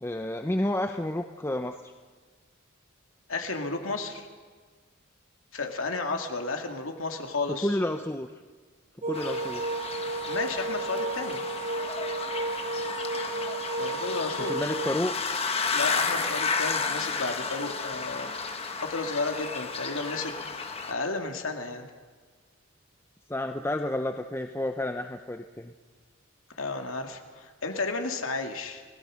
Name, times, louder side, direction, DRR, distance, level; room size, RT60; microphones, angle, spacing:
voice 1, 0.0-1.9 7.6-8.3 9.1-9.6 14.4-15.1 23.3-25.7, left 1 dB, 10° left, 6 dB, 0.6 m, -30 dB
voice 2, 3.3-4.3 5.5-7.8 10.3-11.4 13.8-14.6 15.7-18.3 18.8-20.3 20.9-21.9 26.6-28.8, left 3 dB, 75° left, 4 dB, 2.4 m, -32 dB
sound 1, 9.0-14.9, right 3 dB, 35° right, 0.7 m, -33 dB
sound 2, 9.1-20.9, left 4 dB, 30° left, 1.6 m, -32 dB
29.5 x 17.5 x 6.4 m, 1.5 s
head